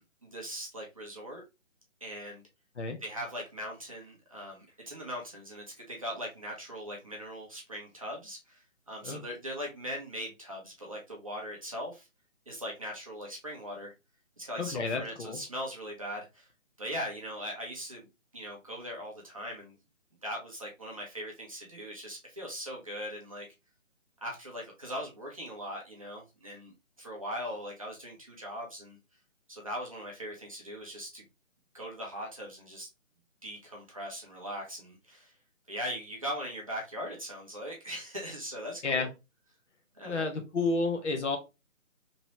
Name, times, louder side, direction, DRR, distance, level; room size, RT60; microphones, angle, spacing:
voice 1, 0.0-1.4 2.0-2.4 3.0-12.1 12.5-13.9 14.4-16.5 16.8-19.7 20.2-23.5 24.2-29.0 29.5-31.2 31.7-32.9 33.4-35.3 35.7-39.1 39.9-40.3, equal, 25° right, 0.6 m, -40 dB
voice 2, 14.6-15.4 38.8-39.1 40.1-41.4, left 3 dB, 60° left, 1.0 m, -30 dB
3.0 x 2.9 x 2.8 m
figure-of-eight pair, 155°, 40 cm